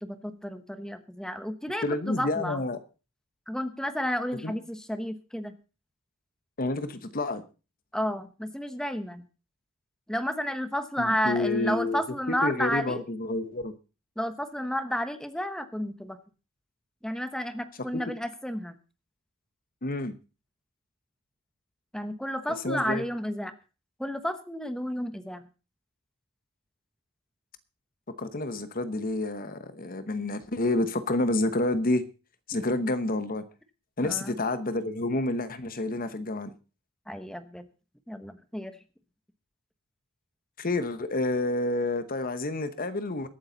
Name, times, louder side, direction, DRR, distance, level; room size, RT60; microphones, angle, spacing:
voice 1, 0.0-2.6 3.5-5.5 7.9-9.2 10.1-13.0 14.2-16.2 17.0-18.8 21.9-23.5 24.0-25.5 34.0-34.3 37.1-37.6 38.1-38.8, equal, 5° left, 10 dB, 1.0 m, -31 dB
voice 2, 1.8-2.8 4.4-4.5 6.6-7.4 11.0-12.0 12.3-13.7 17.9-18.0 19.8-20.1 22.6-23.0 28.2-32.0 32.5-33.4 34.0-36.5 40.6-43.3, left 2 dB, 40° left, 13 dB, 1.0 m, -29 dB
21.5 x 8.7 x 4.0 m, 0.33 s
head